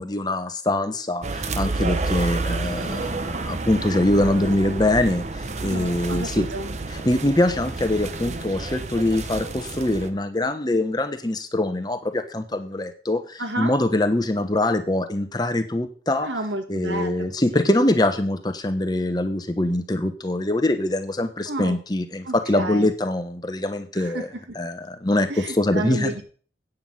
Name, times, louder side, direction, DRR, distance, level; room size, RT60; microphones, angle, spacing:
voice 1, 0.0-6.5 6.9-16.3 16.7-25.3 25.5-26.1, left 1 dB, 20° left, 8 dB, 1.0 m, -23 dB
sound 1, 1.2-10.1, right 3 dB, 40° right, 0.8 m, -30 dB
voice 2, 5.6-6.7 8.2-8.5 13.4-13.7 16.2-17.3 17.5-17.7 21.4-21.8 22.2-22.9 23.9-24.3 25.3-26.2, right 2 dB, 85° right, 6 dB, 1.7 m, -31 dB
9.1 x 6.0 x 7.5 m, 0.41 s
head